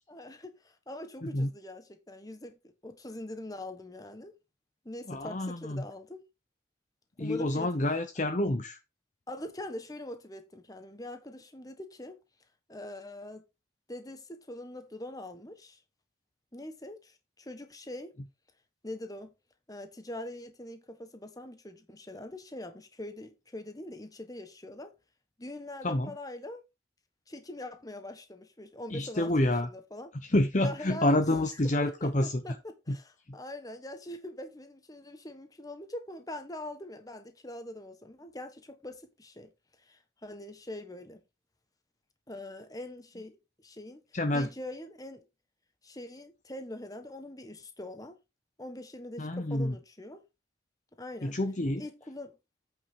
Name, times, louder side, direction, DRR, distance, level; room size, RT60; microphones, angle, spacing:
voice 1, 0.1-2.6 2.8-4.3 4.8-6.2 7.2-7.7 9.3-12.2 12.7-13.4 13.9-15.8 16.5-18.1 18.8-19.3 19.7-24.9 25.4-26.6 27.3-30.1 30.6-39.5 39.8-41.2 42.3-43.4 43.6-44.0 44.3-45.2 45.8-48.2 48.6-50.2 51.0-51.4 51.8-52.3, left 1 dB, 20° left, 1.3 m, -43 dB
voice 2, 5.1-5.8 7.2-8.8 25.8-26.1 28.9-29.7 30.3-32.4 32.9-33.0 44.1-44.5 49.2-49.7 51.2-51.8, left 1 dB, 35° left, 0.8 m, -28 dB
8.6 x 5.5 x 4.5 m
head